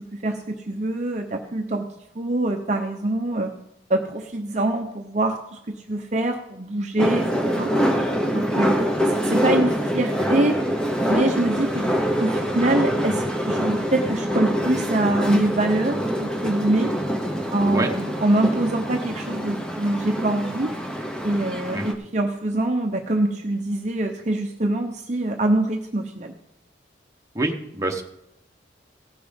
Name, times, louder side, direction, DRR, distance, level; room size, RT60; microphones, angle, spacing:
voice 1, 0.0-1.9 2.1-3.5 3.9-7.7 8.3-8.8 9.1-10.6 11.1-11.9 12.2-16.9 17.5-20.7 21.2-26.3, right 2 dB, 40° right, 3 dB, 0.7 m, -24 dB
sound 1, 7.0-21.9, equal, 5° left, 1.0 m, -25 dB
voice 2, 27.3-28.0, right 2 dB, 15° right, 2 dB, 1.1 m, -26 dB
16.5 x 5.9 x 5.2 m, 0.82 s
head